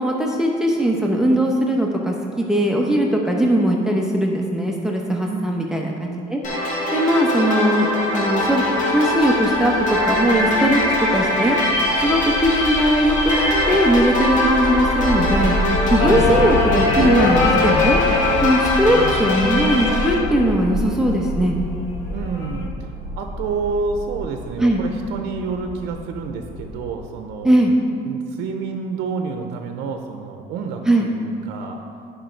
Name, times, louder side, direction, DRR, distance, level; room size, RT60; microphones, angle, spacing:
voice 1, 0.0-6.4 6.9-10.8 11.1-11.6 12.0-15.6 15.9-18.0 18.4-21.6 24.6-24.8 27.4-27.7 30.9-31.1, right 1 dB, 5° right, -1 dB, 0.9 m, -19 dB
voice 2, 5.2-5.7 16.1-16.5 18.9-19.2 22.1-27.6 28.0-31.8, right 5 dB, 85° right, 4 dB, 0.6 m, -29 dB
sound 1, 6.4-20.2, left 1 dB, 50° left, 1.6 m, -22 dB
sound 2, 8.2-26.9, left 1 dB, 20° left, 1.9 m, -29 dB
sound 3, 16.0-21.0 22.2-22.7, left 4 dB, 85° left, 0.8 m, -22 dB
10.0 x 5.0 x 4.4 m, 2.4 s
cardioid pair, 110°, 17 cm